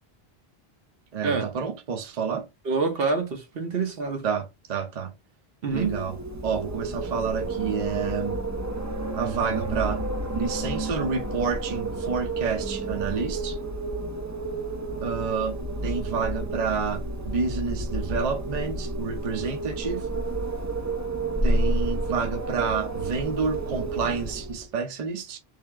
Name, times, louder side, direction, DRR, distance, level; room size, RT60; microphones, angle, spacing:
voice 1, 1.1-2.5 4.2-5.1 5.7-6.2 6.4-8.4 9.1-10.0 10.3-13.6 15.0-20.1 21.4-25.4, right 5 dB, 45° right, 0.8 m, -29 dB
voice 2, 2.6-4.3 5.6-6.0, right 4 dB, 70° right, 1.1 m, -26 dB
Wind, 5.7-24.7, right 2 dB, 25° right, 0.4 m, -30 dB
3.5 x 2.7 x 3.3 m
omnidirectional pair, 1.0 m